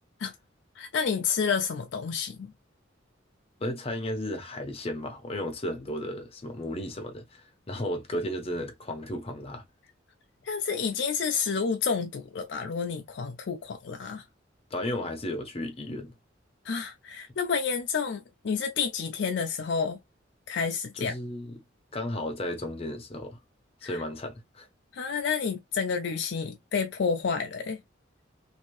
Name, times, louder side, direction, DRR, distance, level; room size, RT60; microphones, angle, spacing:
voice 1, 0.8-2.5 10.4-14.2 16.7-20.0 20.5-21.1 23.8-24.0 24.9-27.8, left 6 dB, 65° left, 0.5 m, -29 dB
voice 2, 3.6-9.6 14.7-16.2 20.9-21.6 21.9-23.4 23.8-24.7, left 1 dB, 30° left, 0.8 m, -34 dB
2.7 x 2.6 x 3.1 m
head